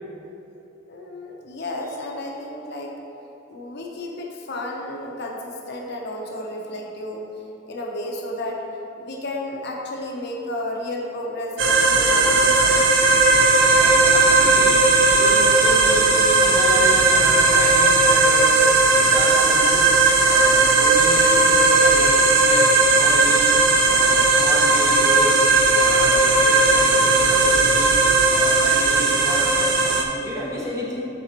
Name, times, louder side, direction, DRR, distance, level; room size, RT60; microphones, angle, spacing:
voice 1, 0.9-2.9 3.5-7.3 7.7-8.6 9.0-12.8, left 1 dB, 55° left, -1 dB, 0.8 m, -32 dB
sound 1, 11.6-30.0, right 3 dB, 65° right, 0.7 m, -16 dB
voice 2, 13.8-14.7 15.1-18.6 18.9-19.8 20.2-22.7 23.0-23.5 23.9-25.4 25.7-27.9 28.3-29.5 29.8-31.0, equal, 15° right, -5 dB, 1.1 m, -31 dB
7.8 x 4.2 x 4.4 m, 2.9 s
head